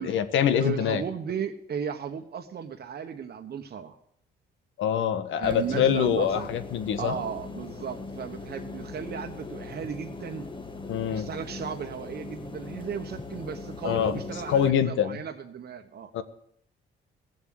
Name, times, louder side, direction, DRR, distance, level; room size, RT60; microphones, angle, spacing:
voice 1, 0.0-1.0 4.8-7.1 10.9-11.3 13.8-14.2 14.5-15.2 16.1-16.2, left 9 dB, 75° left, 10 dB, 1.3 m, -25 dB
voice 2, 0.6-4.0 5.4-6.5 7.0-10.5 11.1-16.1, right 7 dB, 55° right, 5 dB, 1.2 m, -35 dB
sound 1, 5.4-14.7, left 3 dB, 25° left, 1.3 m, -40 dB
17.0 x 7.4 x 7.8 m, 0.70 s
cardioid pair, 90°, 20 cm